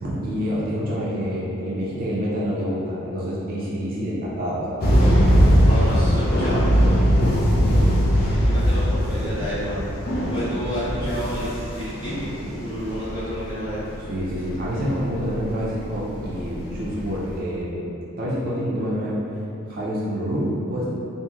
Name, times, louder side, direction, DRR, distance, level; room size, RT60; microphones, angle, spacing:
voice 1, 0.0-4.9 14.1-17.9 18.2-19.2 19.7-20.9, equal, 45° right, -7 dB, 0.4 m, -27 dB
sound 1, 4.8-17.4, equal, 45° left, 0.4 m, -21 dB
voice 2, 5.7-6.7 8.5-9.8 10.3-12.1 12.5-13.8, equal, 20° left, -13 dB, 1.0 m, -29 dB
2.9 x 2.5 x 2.3 m, 2.9 s
head